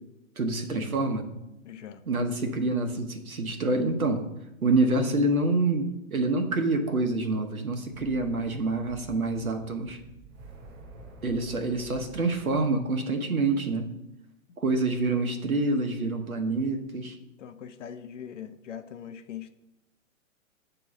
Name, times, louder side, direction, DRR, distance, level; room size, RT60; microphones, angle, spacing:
voice 1, 0.4-1.2 2.1-4.2 4.6-10.0 11.2-13.9 14.6-17.2, right 2 dB, 90° right, 4 dB, 1.0 m, -27 dB
voice 2, 1.6-2.0 17.4-19.5, left 9 dB, 60° left, 8 dB, 0.7 m, -41 dB
sound 1, 7.9-12.9, right 2 dB, 20° right, 0.4 m, -48 dB
7.1 x 3.0 x 6.0 m, 0.92 s
figure-of-eight pair, 115°, 41 cm